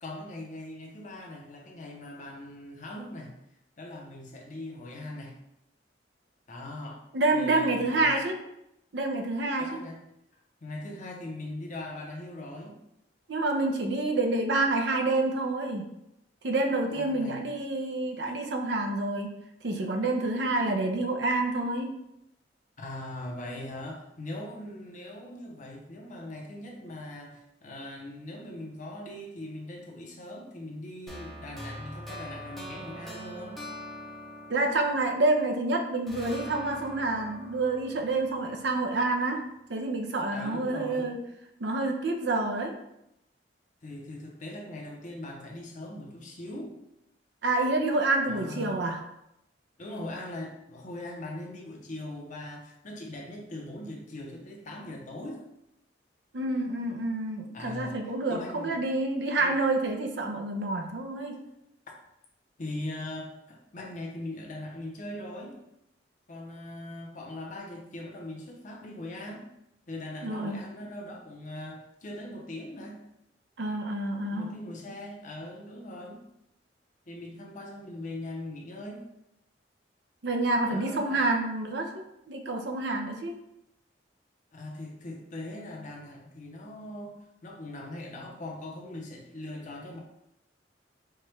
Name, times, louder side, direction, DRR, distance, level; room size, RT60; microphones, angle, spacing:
voice 1, 0.0-3.4 3.8-5.4 6.5-7.0 7.3-8.2 9.6-10.0 10.6-12.8 16.9-17.4 22.8-33.6 40.3-41.1 43.8-46.8 48.3-48.9 49.8-55.5 57.5-58.0 58.3-58.7 59.4-59.6 62.6-65.6 66.3-69.5 69.9-73.0 74.3-76.2 77.1-79.1 80.6-81.3 84.5-90.0, left 1 dB, 45° left, 0 dB, 0.7 m, -40 dB
voice 2, 7.1-8.3 8.9-9.8 13.3-15.8 16.4-19.3 19.6-21.9 34.5-39.4 39.7-41.2 41.6-42.7 47.4-49.0 56.3-61.4 70.2-70.6 73.6-74.5 80.2-81.9 82.3-83.3, right 2 dB, 70° right, 4 dB, 0.6 m, -28 dB
sound 1, 31.1-35.6 36.1-39.1, equal, ahead, 0.6 m, -43 dB
4.5 x 2.3 x 3.2 m, 0.82 s
head